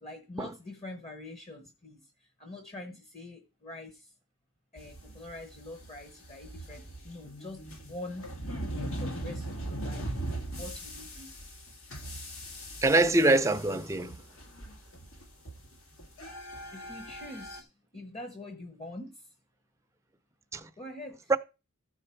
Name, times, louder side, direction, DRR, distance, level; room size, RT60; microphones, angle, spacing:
voice 1, 0.0-4.1 4.7-8.3 8.6-10.2 10.6-11.3 16.7-19.3 20.8-21.3, left 1 dB, 30° left, 0.9 m, -45 dB
sound 1, 4.8-17.6, right 1 dB, 75° left, 1.6 m, -40 dB
voice 2, 12.8-14.1 20.5-20.6 21.3-21.4, right 2 dB, 15° right, 0.5 m, -23 dB
14.0 x 4.8 x 4.5 m
head